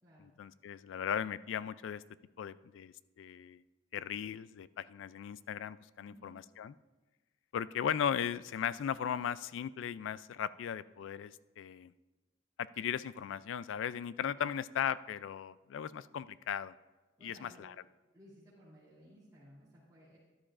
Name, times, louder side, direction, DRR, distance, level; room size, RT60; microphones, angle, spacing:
voice 1, 0.2-2.0 2.4-3.6 3.9-6.7 7.5-11.9 12.6-16.7 17.2-17.7, left 8 dB, 75° left, 17 dB, 0.3 m, -37 dB
voice 2, 6.0-6.4 14.2-14.6 17.2-17.7 18.1-20.2, equal, 20° right, -11 dB, 3.0 m, -58 dB
13.0 x 11.0 x 2.5 m, 1.2 s
head